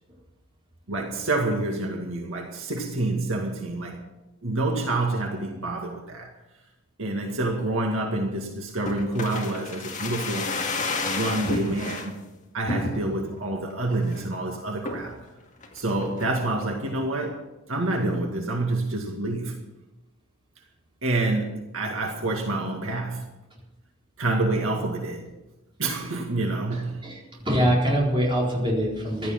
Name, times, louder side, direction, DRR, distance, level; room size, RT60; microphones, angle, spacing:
voice 1, 0.9-4.1 4.4-6.3 7.0-10.6 11.0-12.2 12.5-15.2 15.7-17.4 17.7-19.6 21.0-23.3 24.2-25.3 25.8-27.1, right 2 dB, 65° right, 1 dB, 2.1 m, -27 dB
sound 1, 8.9-12.1 12.7-13.3 13.7-13.8 14.0-14.4 14.9-15.2 15.6-16.3 16.6-16.7, left 2 dB, 35° left, 2.1 m, -31 dB
voice 2, 27.0-29.3, equal, 20° right, -4 dB, 4.3 m, -24 dB
15.5 x 12.5 x 5.9 m, 1.0 s
head